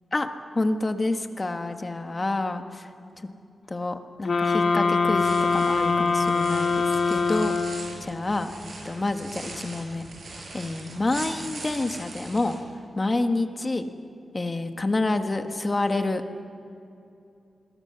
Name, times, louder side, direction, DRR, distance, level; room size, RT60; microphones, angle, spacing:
voice 1, 0.1-2.9 3.2-3.3 3.7-10.0 10.5-12.6 12.9-13.8 14.3-16.2, left 2 dB, 30° left, 7 dB, 1.4 m, -28 dB
sound 1, 4.2-8.1, left 4 dB, 60° left, 2.0 m, -23 dB
sound 2, 5.1-12.6, right 2 dB, 60° right, 6.1 m, -41 dB
27.5 x 21.0 x 6.9 m, 2.7 s
wide cardioid pair, 120°, 0 cm